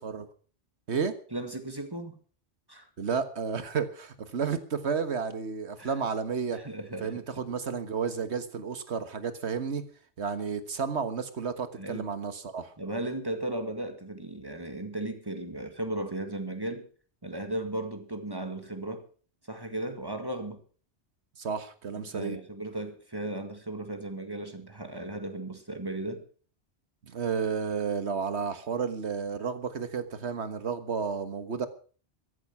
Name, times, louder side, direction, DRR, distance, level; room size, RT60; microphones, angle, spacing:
voice 1, 1.3-2.2 2.7-2.9 5.8-5.9 6.5-7.4 11.8-12.1 12.8-16.9 17.2-19.1 19.5-20.6 22.1-26.3, right 1 dB, 20° right, 1.9 m, -36 dB
voice 2, 3.0-6.6 7.0-9.9 10.2-12.7 21.4-22.4 27.0-31.7, right 6 dB, 75° right, 1.7 m, -32 dB
14.5 x 11.5 x 6.0 m
omnidirectional pair, 1.1 m